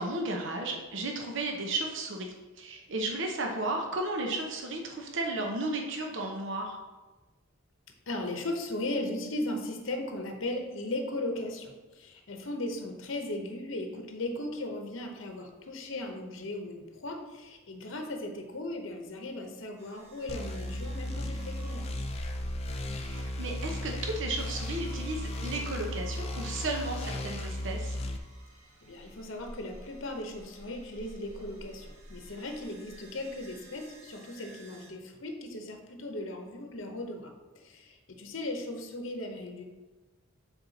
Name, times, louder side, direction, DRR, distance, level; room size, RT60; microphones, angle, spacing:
voice 1, 0.0-6.8 23.1-28.0, right 2 dB, 60° right, 1 dB, 0.8 m, -34 dB
voice 2, 8.1-21.9 28.8-39.6, left 1 dB, 65° left, 4 dB, 0.8 m, -37 dB
sound 1, 19.8-34.9, right 1 dB, 80° right, 2.1 m, -50 dB
sound 2, 20.3-28.2, left 1 dB, 30° left, 0.5 m, -35 dB
7.3 x 4.4 x 4.0 m, 1.2 s
head